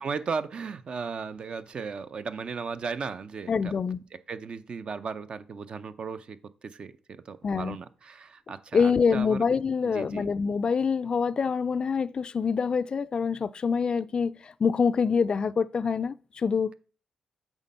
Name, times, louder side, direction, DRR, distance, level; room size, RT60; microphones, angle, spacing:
voice 1, 0.0-3.7 4.3-6.4 6.6-6.9 7.3-9.4 9.8-10.3, right 5 dB, 50° right, 0.6 m, -36 dB
voice 2, 3.5-4.0 7.4-7.8 8.7-16.7, left 5 dB, 45° left, 0.3 m, -26 dB
8.1 x 3.6 x 5.4 m
cardioid pair, 75°, 2 cm